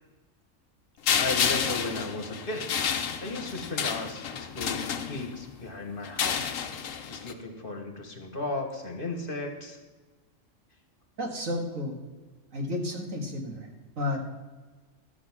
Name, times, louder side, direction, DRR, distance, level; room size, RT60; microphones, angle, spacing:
sound 1, 1.1-5.5 6.0-7.3, left 7 dB, 80° left, 1.2 m, -30 dB
voice 1, 1.2-4.2 4.5-6.6 7.1-9.8, left 2 dB, 45° left, 4 dB, 1.5 m, -35 dB
voice 2, 11.2-12.0 12.5-13.7 14.0-14.3, left 1 dB, 85° right, 2 dB, 2.2 m, -32 dB
12.5 x 7.8 x 6.0 m, 1.3 s
omnidirectional pair, 1.3 m